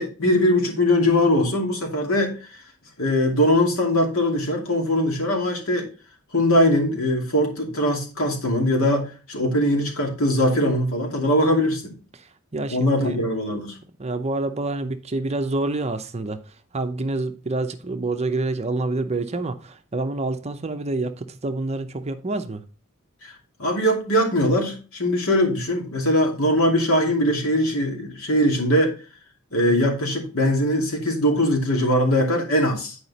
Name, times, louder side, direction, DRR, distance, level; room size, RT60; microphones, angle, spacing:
voice 1, 0.0-2.3 3.0-5.9 6.3-11.9 12.7-13.8 23.2-23.3 23.6-28.9 29.5-33.0, left 1 dB, 70° left, 2.4 m, -21 dB
voice 2, 12.1-13.2 14.0-22.6, right 2 dB, 30° right, 0.7 m, -27 dB
9.6 x 4.9 x 4.1 m
head